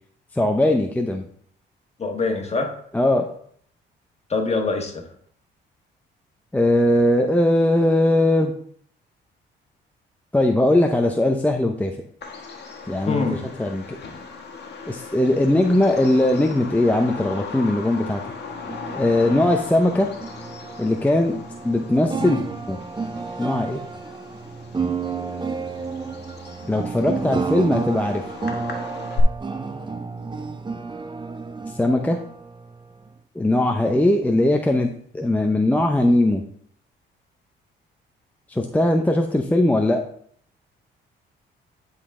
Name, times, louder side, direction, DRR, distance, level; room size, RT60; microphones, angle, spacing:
voice 1, 0.3-1.3 2.9-3.3 6.5-8.6 10.3-11.9 12.9-14.0 14.9-18.2 18.9-20.1 20.8-21.4 21.6-22.4 22.7-22.8 23.4-23.8 26.7-28.2 31.7-32.2 33.4-34.9 35.1-36.4 38.5-40.0, left 1 dB, 10° left, 3 dB, 0.6 m, -20 dB
voice 2, 2.0-2.7 4.3-5.0 13.1-13.4 22.2-22.4, left 3 dB, 30° left, 3 dB, 1.5 m, -24 dB
Bird vocalization bird call bird song, 12.2-29.2, left 5 dB, 55° left, 1.4 m, -38 dB
sound 1, 18.5-33.2, right 4 dB, 25° right, 0.8 m, -31 dB
10.0 x 4.0 x 3.7 m, 0.62 s
cardioid pair, 90°, 20 cm